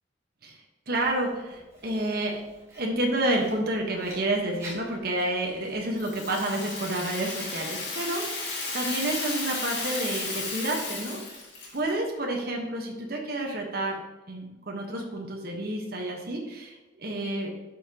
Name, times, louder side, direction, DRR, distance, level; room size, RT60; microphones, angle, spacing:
voice 1, 0.9-2.4 2.8-11.4 11.7-14.0 14.3-17.5, right 1 dB, 55° right, 0 dB, 1.2 m, -30 dB
Writing, 1.0-6.0, right 1 dB, 15° right, 2.7 m, -49 dB
Rattle (instrument), 5.9-11.9, left 3 dB, 70° left, 2.5 m, -34 dB
11.5 x 5.7 x 2.9 m, 1.1 s
head